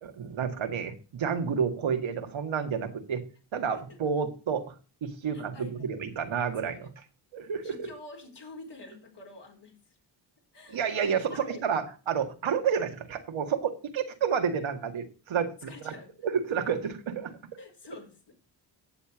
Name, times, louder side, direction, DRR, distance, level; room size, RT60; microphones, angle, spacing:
voice 1, 0.0-3.2 3.5-4.7 5.0-6.8 7.3-7.7 10.7-16.0 16.2-17.4, right 7 dB, 70° right, 6 dB, 1.8 m, -30 dB
voice 2, 5.3-5.9 6.6-6.9 7.6-10.0 10.5-11.7 12.4-12.5 15.6-16.1 17.6-18.3, left 2 dB, 55° left, 1 dB, 4.7 m, -47 dB
9.5 x 7.2 x 6.0 m, 0.35 s
cardioid pair, 60°, 49 cm